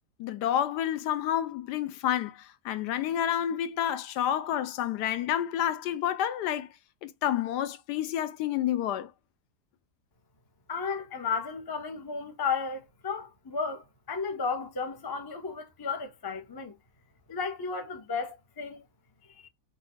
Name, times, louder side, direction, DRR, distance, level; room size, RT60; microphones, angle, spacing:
voice 1, 0.2-6.7 7.0-9.1, left 11 dB, 75° left, 1.1 m, -29 dB
voice 2, 10.7-16.7 17.3-18.8 19.2-19.5, left 5 dB, 30° left, 0.4 m, -34 dB
4.3 x 2.4 x 3.8 m
omnidirectional pair, 1.8 m